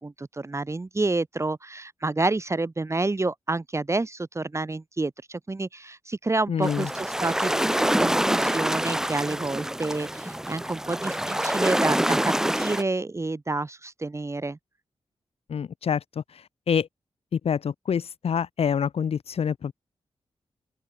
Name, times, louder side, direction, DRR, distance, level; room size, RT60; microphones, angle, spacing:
voice 1, 0.0-14.6, right 2 dB, 30° right, 1.8 m, -29 dB
voice 2, 6.5-6.9 15.5-16.9 17.3-19.7, left 7 dB, 75° left, 1.4 m, -27 dB
sound 1, 6.6-12.8, right 1 dB, 5° right, 0.5 m, -26 dB
open air
cardioid pair, 70°, 10 cm